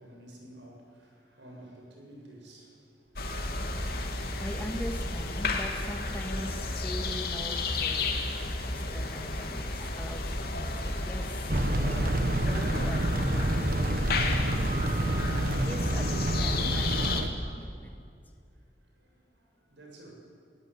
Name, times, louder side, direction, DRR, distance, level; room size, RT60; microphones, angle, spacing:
voice 1, 0.0-3.5 18.5-20.1, right 1 dB, 85° right, 1 dB, 7.6 m, -52 dB
sound 1, 3.2-17.2, left 2 dB, 55° left, 2.9 m, -32 dB
voice 2, 4.4-8.3 8.6-14.6 15.7-18.0, equal, 10° left, 3 dB, 2.3 m, -42 dB
sound 2, 11.5-17.3, right 1 dB, 50° right, 1.3 m, -28 dB
29.0 x 19.0 x 10.0 m, 2.4 s
head